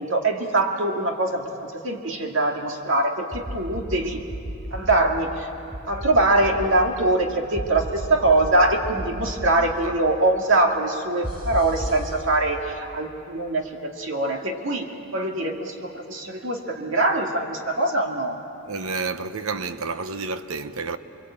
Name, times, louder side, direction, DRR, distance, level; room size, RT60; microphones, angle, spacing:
voice 1, 0.0-4.2 4.7-5.5 5.9-18.4, right 2 dB, 60° right, 2.5 m, -23 dB
sound 1, 3.3-4.0 4.3-5.0 5.7-6.7 7.6-8.5 8.8-9.5 11.2-12.0, right 1 dB, 25° right, 3.1 m, -32 dB
voice 2, 18.7-21.0, right 4 dB, 75° right, 1.1 m, -30 dB
28.5 x 22.5 x 8.9 m
head